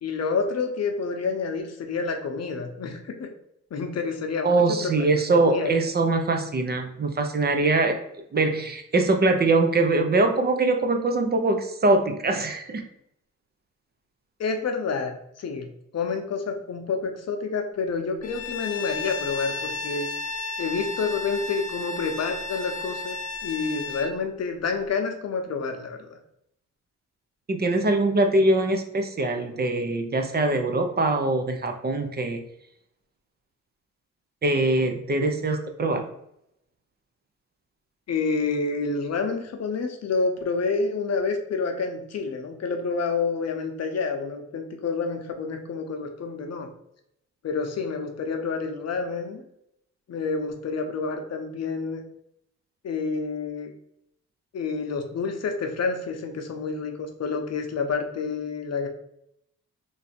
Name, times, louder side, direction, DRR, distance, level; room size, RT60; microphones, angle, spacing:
voice 1, 0.0-3.3 3.7-4.9 5.4-5.7 14.4-20.1 20.6-23.2 23.4-26.2 35.2-35.4 38.1-46.7 47.4-49.4 50.1-52.0 52.8-53.7 54.5-58.9, left 4 dB, 60° left, 4 dB, 0.7 m, -28 dB
voice 2, 4.4-8.0 8.3-12.8 27.5-32.4 34.4-36.0, right 2 dB, 35° right, 5 dB, 0.6 m, -23 dB
Bowed string instrument, 18.2-24.1, left 3 dB, 25° left, 0.5 m, -33 dB
3.2 x 2.7 x 4.2 m, 0.76 s
cardioid pair, 105°, 30 cm